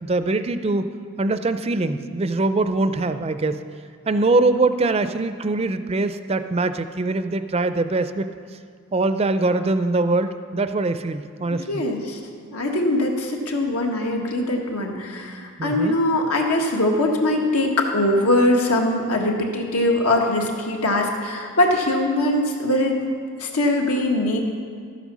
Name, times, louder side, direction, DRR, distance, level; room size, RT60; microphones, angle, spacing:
voice 1, 0.0-0.8 1.2-3.6 4.1-8.3 8.9-11.8 15.6-16.0, right 2 dB, 25° right, 10 dB, 0.4 m, -22 dB
voice 2, 11.5-12.2 12.5-23.0 23.4-24.4, left 1 dB, 85° left, 1 dB, 1.7 m, -22 dB
12.5 x 9.2 x 6.2 m, 2.1 s
head